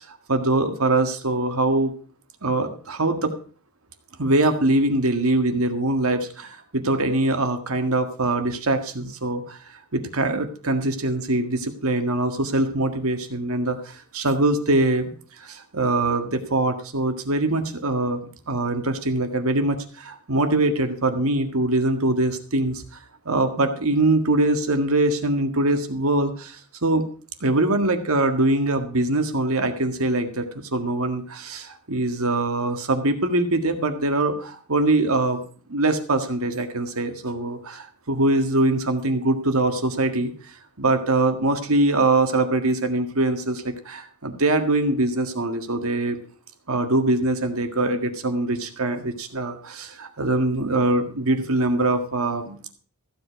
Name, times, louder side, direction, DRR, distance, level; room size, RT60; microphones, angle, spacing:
voice 1, 0.0-1.9 2.4-3.4 4.2-15.1 15.4-18.2 18.5-22.8 23.3-27.1 27.4-35.4 35.7-40.3 40.8-46.2 46.7-52.7, right 2 dB, 75° right, 7 dB, 1.7 m, -23 dB
14.5 x 7.7 x 5.8 m, 0.41 s
head